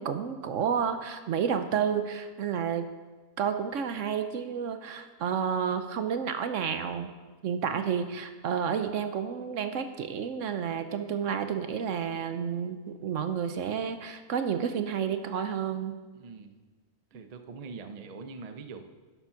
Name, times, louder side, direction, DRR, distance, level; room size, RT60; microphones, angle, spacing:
voice 1, 0.0-2.9 3.4-7.1 7.4-16.0, right 7 dB, 65° right, 8 dB, 1.0 m, -30 dB
voice 2, 16.1-16.6 17.1-18.8, right 4 dB, 45° right, 7 dB, 0.5 m, -43 dB
11.0 x 7.1 x 5.7 m, 1.3 s
omnidirectional pair, 1.6 m